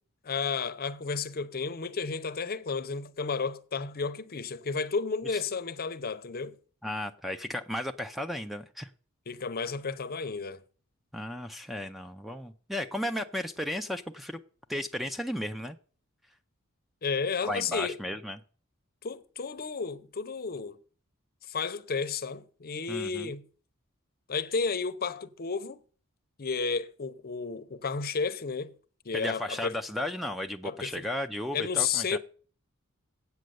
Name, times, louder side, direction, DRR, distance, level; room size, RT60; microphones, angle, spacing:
voice 1, 0.2-6.5 9.3-10.6 17.0-18.0 19.0-20.8 21.5-23.5 24.3-25.8 26.4-28.8 29.0-29.7 30.6-31.1 31.5-32.2, left 5 dB, 45° left, 0.7 m, -32 dB
voice 2, 6.8-8.9 11.1-14.4 14.7-15.8 17.4-18.4 22.9-23.3 29.1-32.2, left 1 dB, ahead, 0.4 m, -34 dB
8.4 x 6.5 x 7.8 m
head